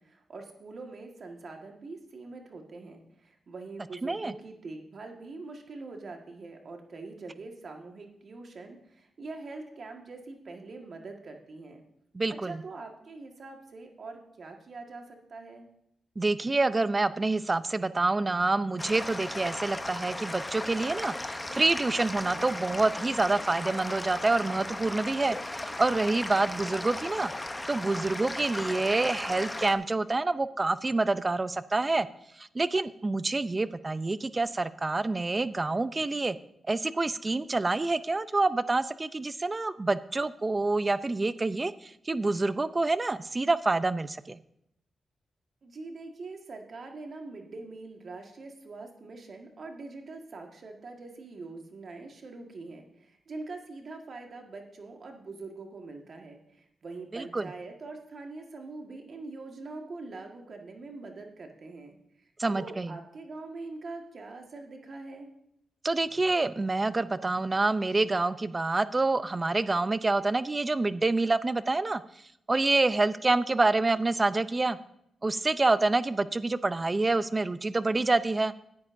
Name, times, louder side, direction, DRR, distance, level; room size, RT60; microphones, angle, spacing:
voice 1, 0.0-11.8 12.3-15.7 45.6-65.3, right 3 dB, 60° right, 3 dB, 1.6 m, -43 dB
voice 2, 4.0-4.3 12.1-12.6 16.2-27.3 27.7-32.1 32.4-36.4 36.7-44.4 57.1-57.5 62.4-63.0 65.8-72.0 72.5-74.8 75.2-78.5, right 3 dB, 30° right, 15 dB, 0.5 m, -27 dB
sound 1, 18.8-29.7, left 1 dB, 20° left, 0.8 m, -36 dB
14.0 x 9.6 x 2.6 m, 0.78 s
cardioid pair, 60°, 0 cm